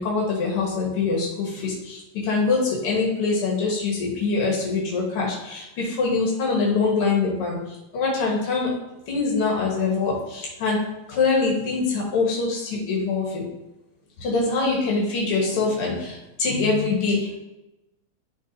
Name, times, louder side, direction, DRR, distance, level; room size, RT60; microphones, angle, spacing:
voice 1, 0.0-8.7 9.1-10.8 11.1-13.4 14.2-17.4, left 4 dB, 85° left, -3 dB, 2.4 m, -24 dB
10.5 x 3.8 x 2.6 m, 0.95 s
omnidirectional pair, 2.4 m